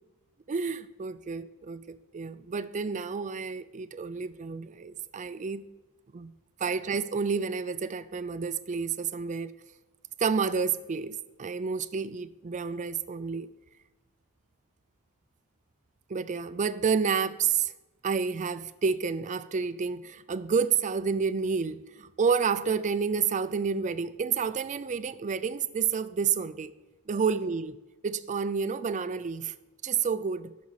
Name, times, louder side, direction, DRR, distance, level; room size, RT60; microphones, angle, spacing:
voice 1, 0.5-5.6 6.1-6.3 6.6-9.5 10.2-13.5 16.1-17.7 18.0-26.7 27.1-27.7 28.0-29.5 29.8-30.5, right 6 dB, 35° right, 0.4 m, -29 dB
12.5 x 5.2 x 6.3 m
head